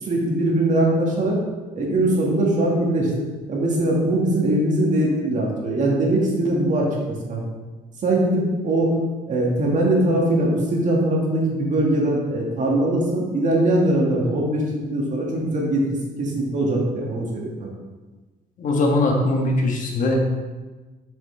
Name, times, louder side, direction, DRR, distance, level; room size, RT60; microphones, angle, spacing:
voice 1, 0.0-1.4 1.7-3.1 3.5-6.9 7.3-7.4 8.0-8.9 9.3-15.8 16.2-17.7, right 1 dB, 45° right, -2 dB, 1.9 m, -21 dB
voice 2, 18.6-20.2, left 2 dB, 50° left, 0 dB, 1.4 m, -21 dB
6.9 x 6.1 x 3.3 m, 1.3 s
cardioid pair, 110°, 17 cm